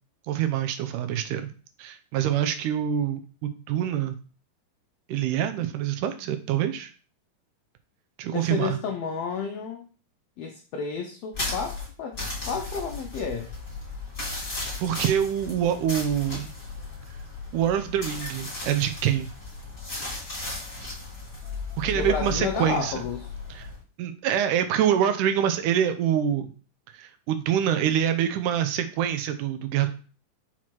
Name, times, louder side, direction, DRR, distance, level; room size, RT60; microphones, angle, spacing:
voice 1, 0.3-1.5 1.8-4.2 5.1-6.9 8.2-8.8 14.8-16.5 17.5-19.3 21.8-23.0 23.5-23.7 24.0-26.5 26.9-29.9, right 10 dB, 85° right, 9 dB, 2.2 m, -25 dB
voice 2, 8.3-9.9 10.4-12.2 12.4-13.5 21.9-23.3, left 6 dB, 90° left, 4 dB, 1.4 m, -31 dB
sound 1, 11.3-23.8, left 3 dB, 15° left, 2.7 m, -36 dB
6.0 x 4.4 x 4.5 m, 0.39 s
omnidirectional pair, 3.7 m